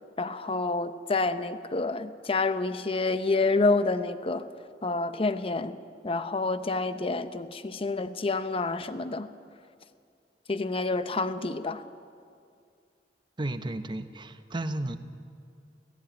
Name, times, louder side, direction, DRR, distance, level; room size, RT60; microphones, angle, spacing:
voice 1, 0.2-4.4 4.8-5.8 6.0-9.3 10.5-11.8, left 3 dB, 35° left, 11 dB, 0.7 m, -28 dB
voice 2, 13.4-15.0, right 1 dB, 25° right, 9 dB, 0.9 m, -33 dB
17.5 x 17.0 x 9.0 m, 2.3 s
head